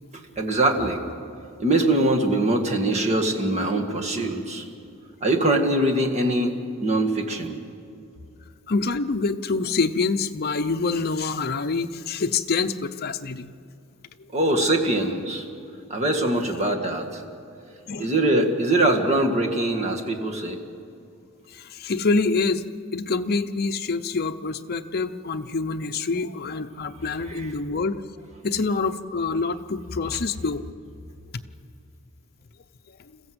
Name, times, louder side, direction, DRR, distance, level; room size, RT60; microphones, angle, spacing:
voice 1, 0.1-1.0 1.6-4.7 5.2-6.5 6.8-7.6 14.3-15.5 15.9-17.2 18.0-20.6 27.3-27.5, right 1 dB, 35° right, 2 dB, 1.9 m, -23 dB
voice 2, 8.7-13.5 17.9-18.1 21.5-22.6 22.9-28.0 28.4-30.6, left 4 dB, 50° left, 7 dB, 0.7 m, -26 dB
27.0 x 14.5 x 8.0 m, 2.4 s
head